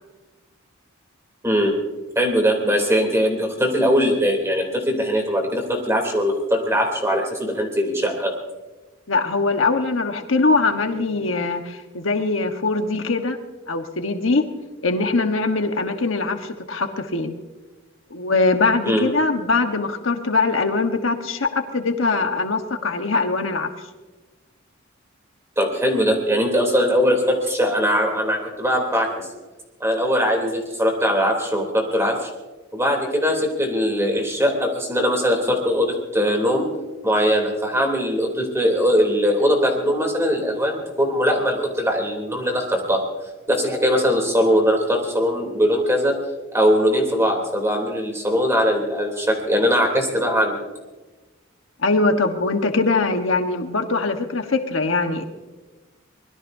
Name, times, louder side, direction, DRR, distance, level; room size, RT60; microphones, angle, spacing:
voice 1, 1.4-1.8 2.1-8.3 18.8-19.0 25.6-29.2 29.8-32.3 32.7-36.7 37.0-43.0 43.5-46.1 46.5-50.6, equal, 15° right, 1 dB, 3.2 m, -21 dB
voice 2, 9.1-13.4 13.7-14.5 14.8-17.4 18.1-23.7 51.8-55.2, left 3 dB, 75° left, 5 dB, 1.3 m, -22 dB
24.5 x 20.5 x 2.7 m, 1.2 s
head